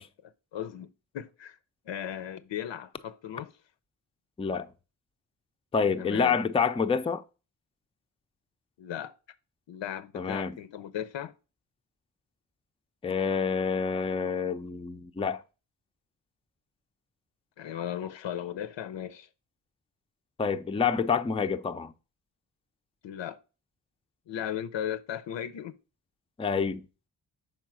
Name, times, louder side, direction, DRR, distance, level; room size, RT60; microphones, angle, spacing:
voice 1, 0.0-1.6 1.9-3.5 6.0-6.4 8.8-9.1 9.7-11.3 17.6-19.3 23.0-23.4 24.3-25.7, left 10 dB, 90° left, 0.6 m, -36 dB
voice 2, 4.4-4.7 5.7-7.2 10.1-10.5 13.0-15.4 20.4-21.9 26.4-26.8, left 5 dB, 15° left, 0.4 m, -27 dB
5.4 x 4.5 x 6.0 m
wide cardioid pair, 95°, 43 cm